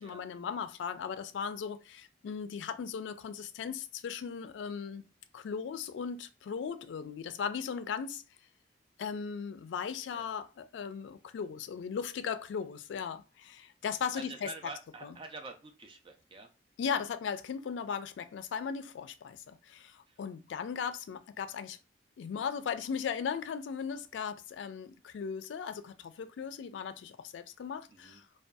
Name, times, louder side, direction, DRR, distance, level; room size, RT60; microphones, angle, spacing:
voice 1, 0.0-5.0 5.3-8.2 9.0-14.5 15.0-15.2 16.8-21.8 22.2-28.3, left 6 dB, 85° left, 0.3 m, -37 dB
voice 2, 14.1-16.5 20.1-20.2 27.9-28.2, right 3 dB, 30° right, 0.4 m, -47 dB
2.6 x 2.2 x 2.2 m
head